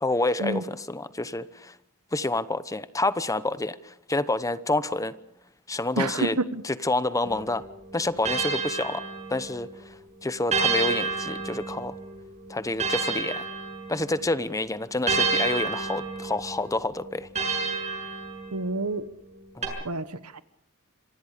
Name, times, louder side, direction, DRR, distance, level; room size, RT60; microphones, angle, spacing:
voice 1, 0.0-1.8 2.1-5.1 5.7-6.4 6.6-7.6 7.9-9.0 9.3-12.0 12.5-13.4 13.9-17.3 19.5-19.8, left 2 dB, 15° left, 0.9 m, -28 dB
voice 2, 5.9-6.6 18.5-19.1 19.8-20.4, right 2 dB, 90° right, 1.4 m, -28 dB
sound 1, 7.3-9.7 10.5-14.3 15.1-18.8 19.6-19.7, right 4 dB, 30° right, 6.8 m, -30 dB
26.5 x 24.5 x 5.1 m
head